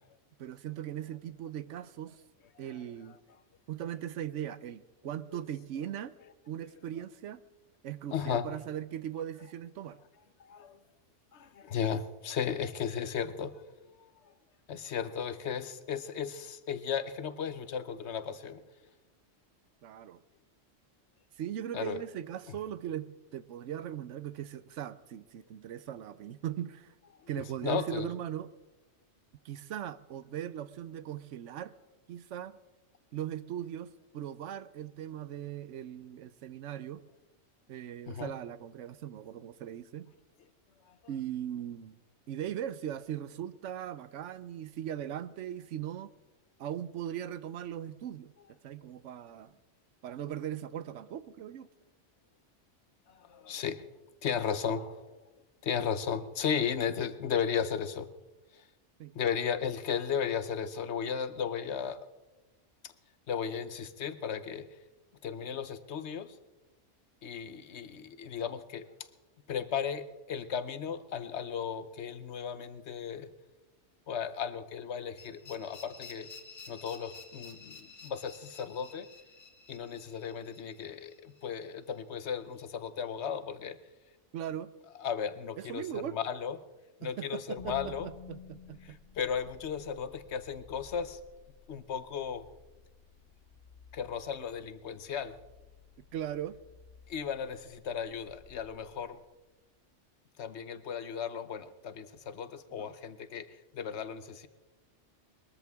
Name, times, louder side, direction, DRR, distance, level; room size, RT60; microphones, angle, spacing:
voice 1, 0.4-2.2 2.6-3.2 3.7-6.1 6.5-7.4 7.8-10.0 19.8-20.2 21.4-26.9 27.3-28.5 29.4-31.7 32.1-32.6 33.1-37.0 37.7-40.1 41.1-42.0 42.3-46.1 46.6-48.3 48.6-49.5 50.0-51.7 59.0-59.1 84.3-84.7 85.6-86.2 87.0-89.0 96.1-96.6 102.8-102.9, right 10 dB, 80° right, 15 dB, 1.0 m, -39 dB
voice 2, 8.1-8.5 10.4-10.8 11.3-14.3 14.7-18.6 21.7-22.0 27.6-28.1 38.1-38.3 53.1-53.8 54.2-55.2 55.6-58.1 58.5-58.6 59.1-62.0 62.8-62.9 63.3-64.7 65.2-66.3 67.2-68.9 69.5-73.3 74.1-76.3 76.7-79.1 79.7-83.8 85.0-86.6 87.0-88.1 88.8-91.2 91.7-92.4 93.9-95.3 97.1-99.2 100.4-104.5, left 7 dB, 65° left, 12 dB, 1.1 m, -35 dB
sound 1, 75.2-82.0, left 4 dB, 85° left, 1.9 m, -52 dB
sound 2, 87.6-99.7, left 6 dB, 45° left, 1.0 m, -54 dB
21.5 x 14.0 x 3.5 m, 1.1 s
omnidirectional pair, 1.2 m